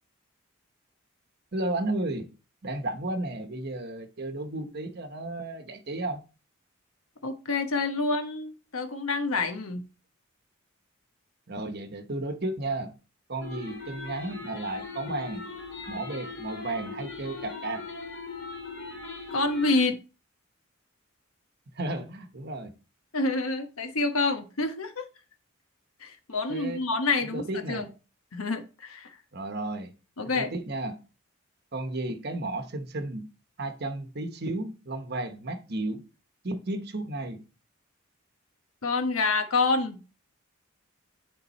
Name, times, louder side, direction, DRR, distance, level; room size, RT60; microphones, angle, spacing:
voice 1, 1.5-2.3 2.6-6.2 11.5-12.9 13.3-15.5 15.9-17.9 21.7-22.7 26.5-26.8 27.3-27.9 29.3-29.9 30.2-31.0 31.7-33.3 33.6-36.0 36.4-37.4, right 2 dB, 50° right, 1.0 m, -33 dB
voice 2, 7.2-9.8 19.3-20.0 23.1-25.1 26.0-27.9 28.3-29.1 30.2-30.5 38.8-40.0, left 3 dB, 85° left, 1.2 m, -27 dB
sound 1, 13.4-19.8, left 4 dB, 60° left, 2.7 m, -40 dB
9.7 x 3.8 x 4.2 m
head